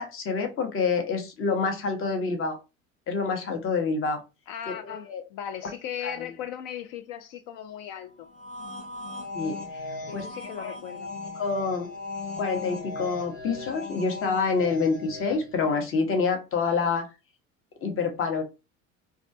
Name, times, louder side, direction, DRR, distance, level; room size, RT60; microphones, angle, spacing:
voice 1, 0.0-2.6 3.1-4.2 4.7-5.2 6.0-6.3 9.3-9.6 10.1-10.3 10.6-10.7 11.4-11.9 12.4-17.0 17.8-18.4, left 4 dB, 35° left, 0.8 m, -27 dB
voice 2, 4.5-8.3 10.1-11.1, left 9 dB, 60° left, 0.5 m, -37 dB
sound 1, 8.3-15.6, left 2 dB, 90° left, 0.9 m, -38 dB
2.3 x 2.2 x 2.6 m
hypercardioid pair, 75°, 38 cm